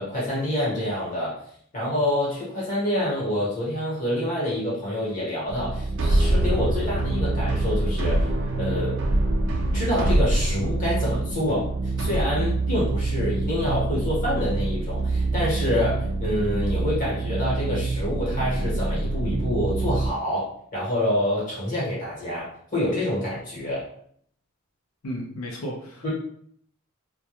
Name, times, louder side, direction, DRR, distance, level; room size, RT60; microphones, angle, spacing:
voice 1, 0.0-1.4 1.7-8.3 8.6-9.0 9.7-23.9 26.0-26.1, left 1 dB, 40° left, -7 dB, 1.1 m, -27 dB
sound 1, 5.5-20.1, right 2 dB, 60° right, 0.4 m, -25 dB
voice 2, 25.0-26.1, equal, 80° left, 0 dB, 0.5 m, -34 dB
2.2 x 2.2 x 2.9 m, 0.63 s
head